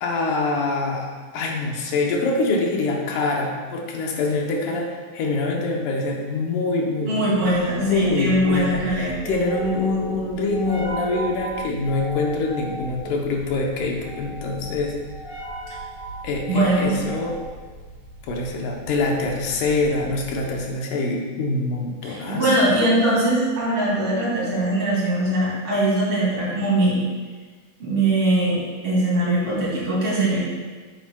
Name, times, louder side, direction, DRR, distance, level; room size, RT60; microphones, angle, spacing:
voice 1, 0.0-15.0 16.2-17.4 18.3-22.6, left 3 dB, 75° left, 0 dB, 2.5 m, -25 dB
voice 2, 7.0-9.1 16.5-17.0 22.1-27.0 27.8-30.4, right 1 dB, 45° right, -7 dB, 3.4 m, -21 dB
sound 1, 7.5-20.7, right 2 dB, 50° left, 2.7 m, -37 dB
9.1 x 7.8 x 2.3 m, 1.4 s
omnidirectional pair, 3.7 m